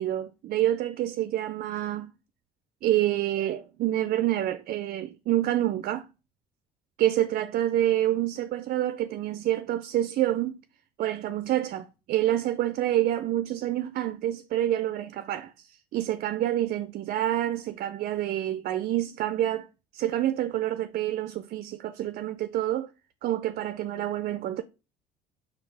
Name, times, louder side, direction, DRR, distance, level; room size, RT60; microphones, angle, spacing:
voice 1, 0.0-2.1 2.8-6.1 7.0-10.5 11.0-19.7 19.9-22.9 23.2-24.6, right 13 dB, 55° right, 0.4 m, -27 dB
4.5 x 2.4 x 4.7 m
supercardioid pair, 80°, 18 cm